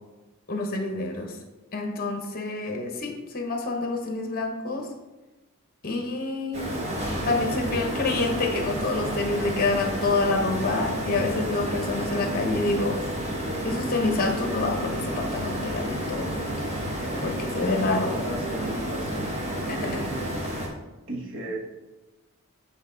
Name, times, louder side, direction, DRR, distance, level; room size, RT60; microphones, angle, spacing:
voice 1, 0.5-1.3 1.7-4.9 5.8-6.6 7.2-13.0 13.6-16.3 17.2-18.1 18.8-18.9 19.7-19.9, left 3 dB, 40° left, 2 dB, 0.9 m, -27 dB
sound 1, 6.5-20.7, right 1 dB, 30° right, 1.2 m, -31 dB
voice 2, 18.2-19.3 19.7-20.1 21.1-21.6, right 1 dB, 60° right, -1 dB, 1.3 m, -35 dB
8.0 x 3.3 x 3.8 m, 1.1 s
head